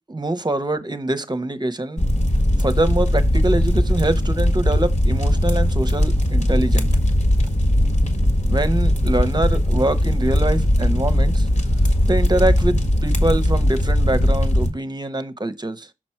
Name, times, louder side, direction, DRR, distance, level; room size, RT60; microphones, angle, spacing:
voice 1, 0.1-2.1 2.6-6.9 8.5-11.5 12.0-15.9, right 1 dB, 30° right, 0.9 m, -24 dB
sound 1, 2.0-14.7, equal, 50° left, 1.7 m, -19 dB
6.2 x 6.0 x 4.4 m
wide cardioid pair, 80°, 15 cm